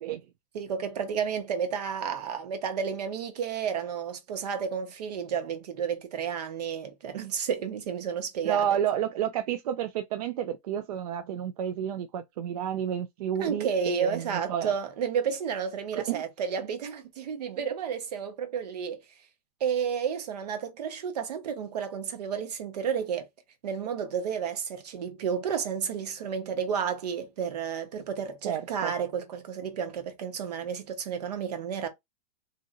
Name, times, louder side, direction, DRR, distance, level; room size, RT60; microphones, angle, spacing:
voice 1, 0.5-8.6 13.4-19.0 19.6-23.3 23.6-31.9, right 7 dB, 85° right, 1.0 m, -31 dB
voice 2, 8.4-14.7 15.9-16.2 28.4-28.9, right 9 dB, 70° right, 0.4 m, -30 dB
2.8 x 2.6 x 2.5 m
supercardioid pair, 165°, 20 cm